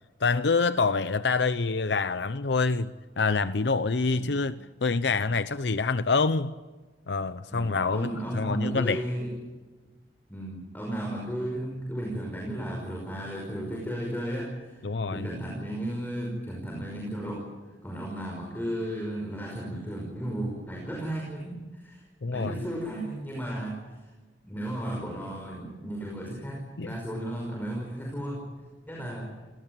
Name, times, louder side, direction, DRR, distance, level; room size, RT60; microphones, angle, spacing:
voice 1, 0.2-4.5 4.8-6.5 7.1-9.0 14.8-15.2 22.2-22.5 26.8-26.9, left 4 dB, 75° left, 13 dB, 0.7 m, -26 dB
voice 2, 7.5-9.3 10.3-14.8 15.1-17.5 17.8-24.1 24.4-28.5 28.9-29.3, right 1 dB, 10° left, -1 dB, 5.6 m, -34 dB
28.0 x 18.5 x 9.1 m, 1.3 s
head